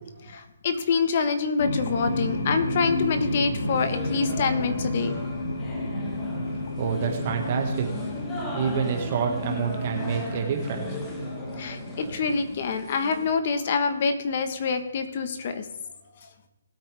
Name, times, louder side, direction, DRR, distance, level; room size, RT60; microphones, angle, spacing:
voice 1, 0.2-5.1 11.6-15.6, left 5 dB, 40° left, 9 dB, 1.2 m, -26 dB
sound 1, 1.6-12.5, left 1 dB, 90° left, 2.8 m, -31 dB
sound 2, 1.9-13.3, left 1 dB, 10° left, 1.4 m, -38 dB
voice 2, 6.8-7.9 8.5-10.9, right 7 dB, 35° right, 3 dB, 1.7 m, -27 dB
19.5 x 8.6 x 3.5 m, 1.0 s
hypercardioid pair, 160°, 0 cm